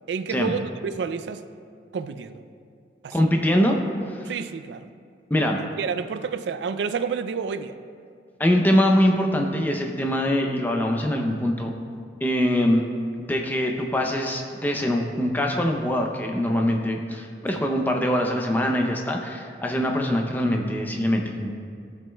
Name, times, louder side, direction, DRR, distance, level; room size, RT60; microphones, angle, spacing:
voice 1, 0.1-1.5 1.9-2.4 3.0-3.2 4.2-4.9 5.6-7.8 17.5-17.7, right 6 dB, 80° right, 11 dB, 0.3 m, -30 dB
voice 2, 3.1-3.8 4.1-4.3 5.3-5.6 8.4-11.7 12.2-12.8 13.2-21.5, equal, 10° left, 2 dB, 0.5 m, -23 dB
15.0 x 5.4 x 2.2 m, 2.3 s
head